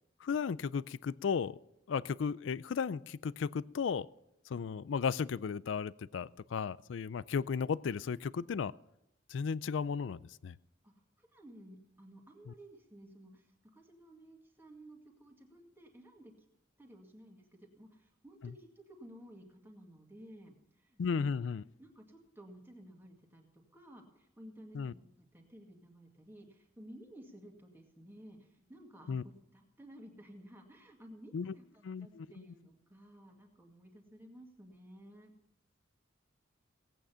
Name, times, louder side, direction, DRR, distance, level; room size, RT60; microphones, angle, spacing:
voice 1, 0.2-1.6 1.9-4.1 4.5-8.7 9.3-10.6 12.5-12.6 21.0-21.6 24.7-24.9 29.1-29.2 31.3-31.5 31.8-32.4, left 6 dB, 75° left, 20 dB, 0.4 m, -35 dB
voice 2, 10.8-16.5 16.8-29.2 29.5-35.3, right 1 dB, 10° right, 1 dB, 2.0 m, -55 dB
17.5 x 9.0 x 5.6 m, 0.82 s
head